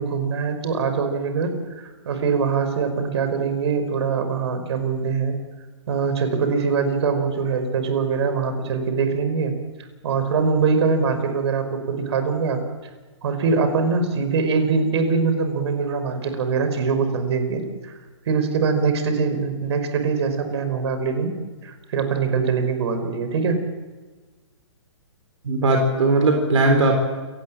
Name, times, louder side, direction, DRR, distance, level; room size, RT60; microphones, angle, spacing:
voice 1, 0.0-5.3 5.9-9.5 10.0-12.6 13.2-17.9 18.2-21.3 21.6-23.6, right 5 dB, 60° right, 8 dB, 5.1 m, -23 dB
voice 2, 25.4-26.9, right 2 dB, 75° right, 4 dB, 4.0 m, -18 dB
29.0 x 18.5 x 7.6 m, 1.3 s
hypercardioid pair, 140°, 16 cm